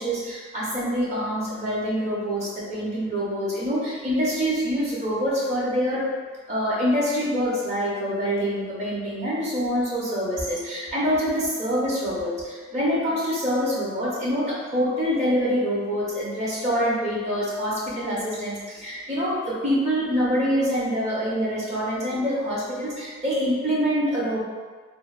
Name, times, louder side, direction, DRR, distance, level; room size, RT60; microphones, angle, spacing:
voice 1, 0.0-6.0 6.5-24.4, equal, 35° right, -7 dB, 0.6 m, -25 dB
3.0 x 2.1 x 2.3 m, 1.5 s
head